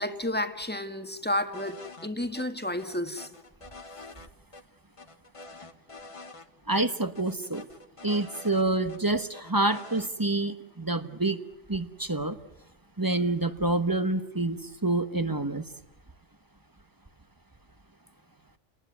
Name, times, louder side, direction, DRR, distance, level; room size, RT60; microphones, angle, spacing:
voice 1, 0.0-3.3, left 1 dB, 10° left, 7 dB, 1.7 m, -31 dB
sound 1, 1.5-2.1 2.3-2.5 2.8-4.3 4.5-4.6 5.0-6.4 6.7-6.8 7.1-9.0 9.3-10.1, left 3 dB, 30° left, 1.3 m, -46 dB
voice 2, 6.7-7.7 8.0-11.4 11.7-12.4 13.0-15.6, right 2 dB, 20° right, 11 dB, 1.1 m, -27 dB
30.0 x 19.5 x 9.6 m, 0.96 s
omnidirectional pair, 1.2 m